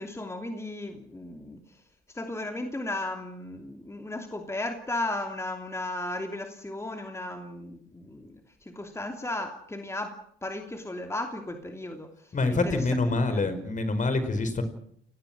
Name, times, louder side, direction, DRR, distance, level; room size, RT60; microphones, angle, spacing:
voice 1, 0.0-13.5, left 2 dB, 15° left, 4 dB, 2.8 m, -36 dB
voice 2, 12.3-14.6, left 3 dB, 40° left, 10 dB, 5.2 m, -26 dB
29.5 x 18.5 x 6.2 m, 0.66 s
cardioid pair, 90°, 20 cm